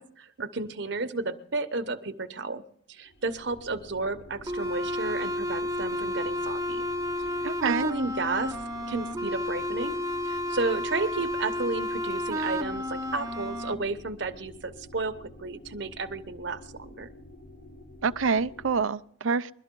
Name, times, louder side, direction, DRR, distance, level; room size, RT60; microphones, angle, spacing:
voice 1, 0.0-2.6 2.9-6.9 7.2-7.3 7.6-8.6 8.9-10.0 10.2-17.1, right 3 dB, 60° right, 1.0 m, -32 dB
sound 1, 2.9-18.8, left 1 dB, 60° left, 4.0 m, -49 dB
sound 2, 4.5-13.7, left 1 dB, 15° right, 0.9 m, -31 dB
voice 2, 7.4-7.9 18.0-19.5, right 5 dB, 80° right, 0.6 m, -27 dB
22.5 x 12.5 x 3.8 m
head